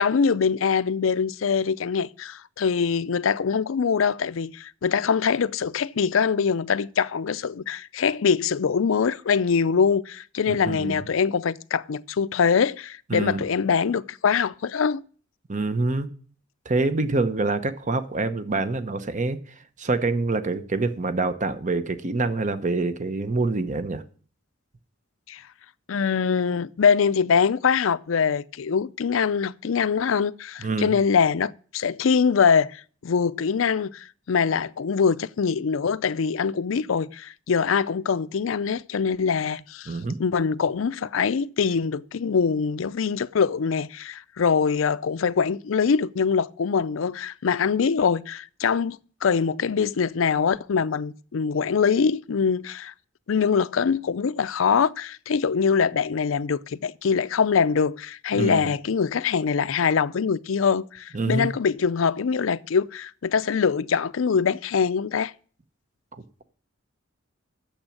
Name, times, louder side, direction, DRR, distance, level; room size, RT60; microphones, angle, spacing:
voice 1, 0.0-15.0 25.3-25.4 25.9-52.9 53.3-65.3, left 6 dB, 75° left, 0.5 m, -23 dB
voice 2, 10.5-11.0 13.1-13.4 15.5-16.1 16.6-19.4 19.8-24.0 30.6-30.9 39.9-40.2 58.3-58.7 61.1-61.5 66.1-66.4, right 3 dB, 40° right, 0.9 m, -26 dB
8.8 x 7.3 x 8.7 m
head